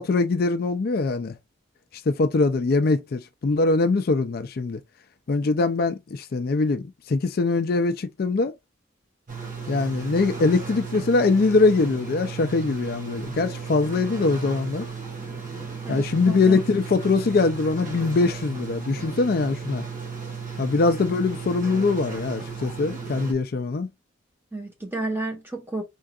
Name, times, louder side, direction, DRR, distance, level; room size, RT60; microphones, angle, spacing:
voice 1, 0.0-1.4 1.9-4.8 5.3-8.5 9.7-14.8 15.9-19.8 20.6-23.9, left 3 dB, 50° left, 0.4 m, -22 dB
sound 1, 9.3-23.3, right 5 dB, 40° right, 1.5 m, -35 dB
voice 2, 15.8-16.6 24.5-25.8, right 2 dB, 10° right, 1.2 m, -31 dB
4.4 x 3.7 x 2.4 m
head